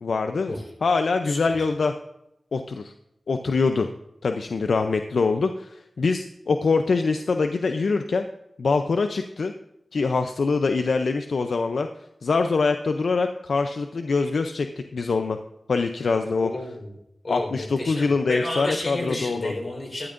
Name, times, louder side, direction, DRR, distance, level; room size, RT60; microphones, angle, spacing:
voice 1, 0.0-0.5 0.8-1.9 2.5-2.9 3.3-3.9 4.2-8.3 8.6-9.5 9.9-11.9 12.2-15.4 15.7-16.5 17.3-19.5, left 4 dB, 80° left, 7 dB, 0.5 m, -24 dB
voice 2, 1.2-1.7 16.4-16.9 17.2-20.1, left 1 dB, 55° left, 1 dB, 4.2 m, -31 dB
14.5 x 12.5 x 2.6 m, 0.84 s
wide cardioid pair, 60°, 0 cm